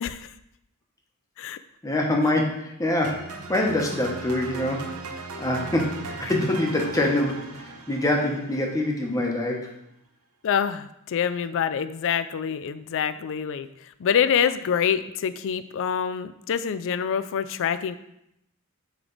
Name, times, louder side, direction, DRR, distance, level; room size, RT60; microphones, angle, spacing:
voice 1, 1.8-9.7, left 1 dB, 15° left, 0 dB, 1.0 m, -25 dB
sound 1, 3.0-9.2, right 3 dB, 70° right, 0.7 m, -38 dB
voice 2, 10.4-18.0, left 8 dB, 60° left, 13 dB, 0.4 m, -26 dB
8.9 x 3.3 x 3.9 m, 0.81 s
head